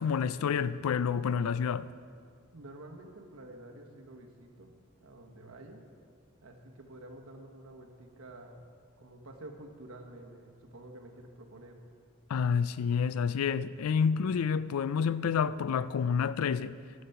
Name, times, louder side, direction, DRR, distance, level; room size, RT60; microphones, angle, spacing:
voice 1, 0.0-1.9 12.3-16.7, left 6 dB, 90° left, 0.4 m, -29 dB
voice 2, 2.5-4.7 5.0-5.8 6.4-8.7 9.0-11.8, right 1 dB, 85° right, 1.2 m, -49 dB
13.0 x 6.8 x 5.7 m
head